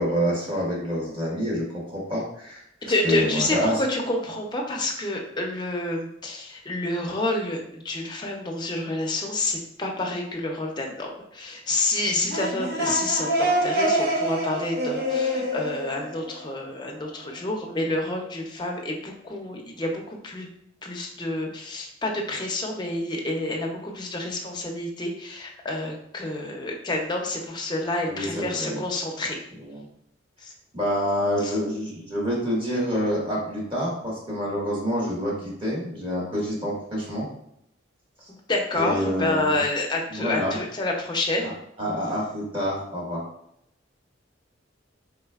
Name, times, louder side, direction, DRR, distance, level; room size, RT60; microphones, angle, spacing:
voice 1, 0.0-3.7 28.1-28.8 29.7-29.8 30.7-37.3 38.8-39.6 40.1-40.6 41.4-41.5 41.8-43.3, equal, 30° right, -5 dB, 1.6 m, -27 dB
voice 2, 2.8-20.5 20.8-29.4 30.4-30.5 31.4-31.5 38.3-41.5, left 2 dB, 25° left, 0 dB, 0.7 m, -28 dB
sound 1, 12.1-16.8, equal, 55° right, 1.0 m, -26 dB
4.2 x 3.7 x 2.4 m, 0.74 s
head